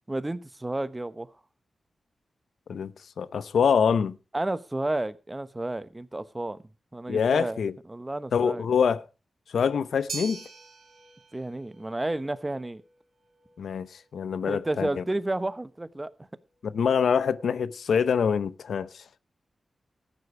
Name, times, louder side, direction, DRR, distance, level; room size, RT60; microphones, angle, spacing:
voice 1, 0.1-1.3 4.3-6.6 6.9-7.6 7.9-8.8 11.3-12.8 14.5-16.1, right 2 dB, 20° right, 0.9 m, -31 dB
voice 2, 3.2-4.1 7.1-7.7 8.3-9.0 9.5-10.4 13.6-15.0 16.6-19.0, left 6 dB, 85° left, 0.7 m, -25 dB
sound 1, 10.1-18.5, right 4 dB, 65° right, 4.3 m, -46 dB
14.0 x 10.0 x 4.9 m
cardioid pair, 75°, 0 cm